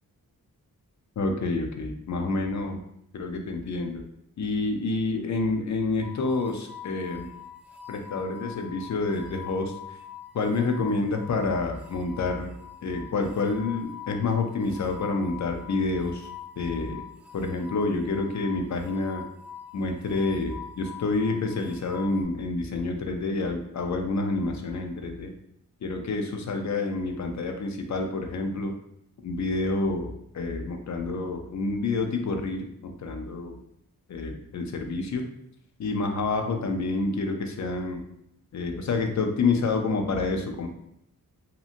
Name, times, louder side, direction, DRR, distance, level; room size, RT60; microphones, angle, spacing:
voice 1, 1.2-2.8 3.1-4.0 4.4-7.3 7.9-9.7 10.3-12.6 12.8-16.3 16.6-17.0 17.3-19.2 19.7-25.3 25.8-28.7 29.2-33.6 34.1-35.2 35.8-38.0 38.5-40.7, left 3 dB, 55° left, 4 dB, 0.4 m, -28 dB
sound 1, 6.0-22.2, left 8 dB, 5° right, 0.4 m, -44 dB
2.8 x 2.6 x 2.4 m, 0.75 s
wide cardioid pair, 175°, 35 cm